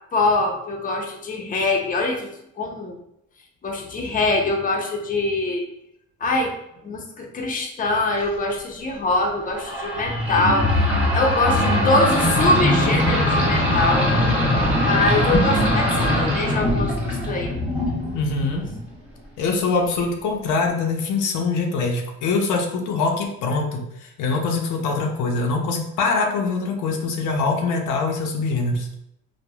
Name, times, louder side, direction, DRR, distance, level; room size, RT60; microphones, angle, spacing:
voice 1, 0.1-2.3 2.6-3.0 3.6-5.6 6.2-6.6 6.8-10.7 11.1-14.1 14.6-17.6, left 2 dB, 30° left, 1 dB, 0.5 m, -23 dB
sound 1, 9.5-18.9, left 1 dB, 5° right, 1.2 m, -21 dB
voice 2, 18.1-18.7 19.4-28.9, left 3 dB, 85° left, 2 dB, 0.6 m, -23 dB
3.3 x 2.0 x 2.2 m, 0.78 s
cardioid pair, 90°, 30 cm